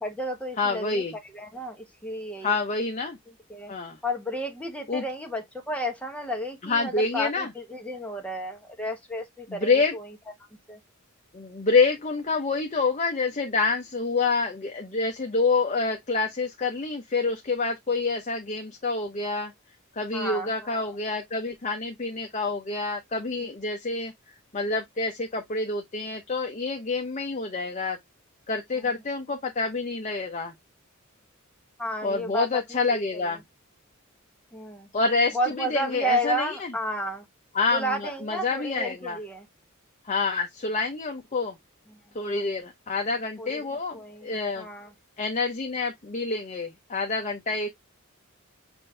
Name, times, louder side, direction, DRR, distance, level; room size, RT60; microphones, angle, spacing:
voice 1, 0.0-1.0 1.3-2.6 3.5-3.7 4.0-10.0 10.7-10.8 20.1-20.8 31.8-32.6 32.9-33.3 34.5-34.9 35.3-37.2 37.7-39.5 43.4-43.7 43.9-44.9, equal, 5° left, 1.0 m, -32 dB
voice 2, 0.6-1.2 2.4-3.2 3.7-4.0 4.9-5.0 6.6-7.5 9.5-9.9 11.3-19.5 20.0-24.1 24.5-28.0 28.5-30.5 32.0-33.4 34.9-36.7 37.5-39.2 40.0-41.6 42.1-44.7 45.2-47.7, left 3 dB, 35° left, 0.7 m, -27 dB
6.0 x 2.6 x 3.3 m
head